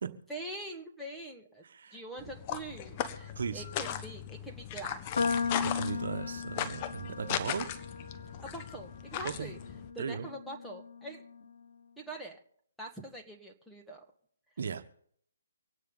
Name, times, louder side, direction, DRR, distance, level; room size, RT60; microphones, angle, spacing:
voice 1, 0.3-1.6 1.9-5.0 8.4-9.6 9.9-11.2 12.0-12.4 12.8-14.1, right 1 dB, ahead, 0 dB, 1.6 m, -44 dB
voice 2, 1.6-2.0 3.3-3.6 5.6-7.7 9.2-9.5 10.0-10.3 14.6-14.8, right 6 dB, 65° right, 8 dB, 1.2 m, -37 dB
sound 1, 2.2-9.9, left 10 dB, 30° left, 1.2 m, -38 dB
sound 2, 5.2-11.5, left 5 dB, 75° left, 1.1 m, -37 dB
25.0 x 9.3 x 3.9 m, 0.65 s
hypercardioid pair, 150°, 0 cm